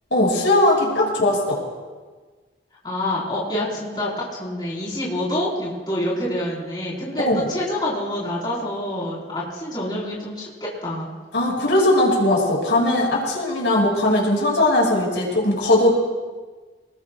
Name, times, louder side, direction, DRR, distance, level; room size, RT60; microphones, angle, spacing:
voice 1, 0.1-1.6 7.3-7.4 11.3-15.9, left 1 dB, 85° left, -3 dB, 5.6 m, -19 dB
voice 2, 2.8-11.1, left 1 dB, 25° left, -6 dB, 4.5 m, -27 dB
26.5 x 20.0 x 2.4 m, 1.4 s
head